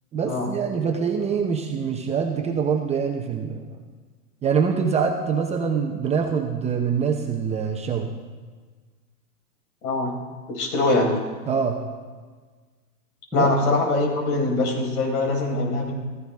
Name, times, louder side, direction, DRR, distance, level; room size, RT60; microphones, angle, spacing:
voice 1, 0.1-3.6 4.4-8.1 11.5-11.8 13.3-13.5, right 6 dB, 15° right, 2 dB, 0.8 m, -24 dB
voice 2, 9.8-10.1 10.5-11.2 13.3-15.9, left 2 dB, 65° left, 0 dB, 4.9 m, -22 dB
15.5 x 15.0 x 3.6 m, 1.4 s
hypercardioid pair, 135°, 46 cm